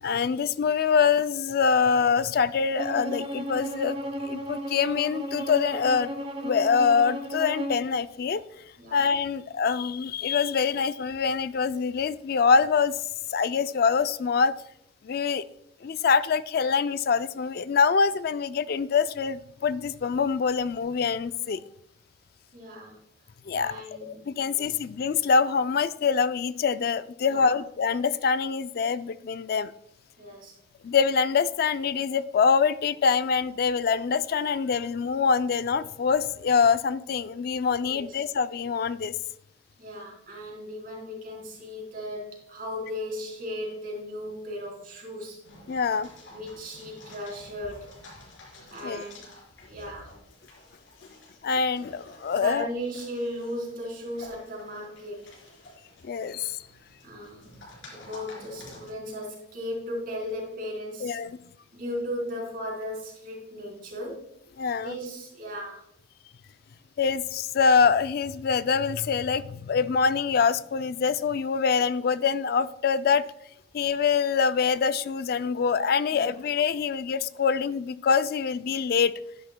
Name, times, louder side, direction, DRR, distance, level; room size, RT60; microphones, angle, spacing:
voice 1, 0.0-4.0 4.3-6.1 6.4-8.4 8.9-13.0 13.3-14.5 15.0-15.4 15.8-21.6 23.5-23.7 24.0-29.7 30.8-39.1 45.7-46.1 48.8-49.0 51.4-52.7 56.0-56.6 61.0-61.4 64.6-64.9 67.0-73.3 73.7-79.1, left 5 dB, 50° left, 14 dB, 0.3 m, -25 dB
Bowed string instrument, 2.8-7.8, right 1 dB, 30° right, 0.9 m, -34 dB
voice 2, 22.5-23.0 23.5-24.2 24.5-24.7 27.2-27.6 30.2-30.5 37.9-38.2 39.8-45.4 46.3-47.9 48.7-49.3 49.7-50.1 52.3-55.3 57.0-57.5 57.9-61.2 61.7-64.3 64.7-65.8 76.1-76.3, equal, 50° right, -2 dB, 3.9 m, -36 dB
sound 1, 45.4-58.9, left 1 dB, 80° left, 4.5 m, -50 dB
12.5 x 11.0 x 2.2 m, 0.74 s
head